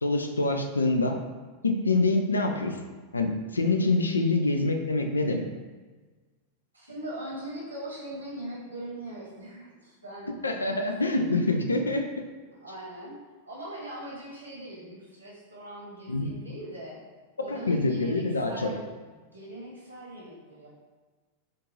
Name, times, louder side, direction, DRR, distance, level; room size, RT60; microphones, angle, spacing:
voice 1, 0.0-1.2 1.6-2.8 3.1-5.5 10.4-12.2 16.1-16.3 17.5-18.7, left 2 dB, 75° left, 5 dB, 0.4 m, -26 dB
voice 2, 6.7-10.7 11.1-11.5 12.6-13.2 13.4-17.0 17.4-18.9 19.3-20.7, right 1 dB, 80° right, -5 dB, 1.2 m, -41 dB
4.3 x 2.5 x 3.2 m, 1.3 s
figure-of-eight pair, 90°, 0 cm